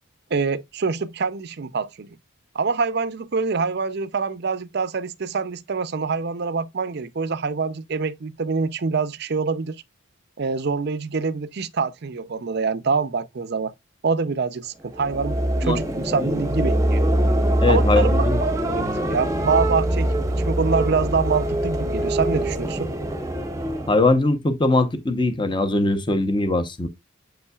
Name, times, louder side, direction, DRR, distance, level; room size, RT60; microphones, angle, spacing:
voice 1, 0.3-2.2 2.5-9.8 10.4-13.7 14.0-17.1 17.7-20.1 20.4-22.9, right 4 dB, 50° right, 0.5 m, -25 dB
sound 1, 14.8-24.2, right 1 dB, 15° right, 0.8 m, -23 dB
voice 2, 17.6-18.4 18.7-18.8 23.9-26.9, left 2 dB, 20° left, 0.8 m, -21 dB
7.5 x 5.5 x 2.3 m
head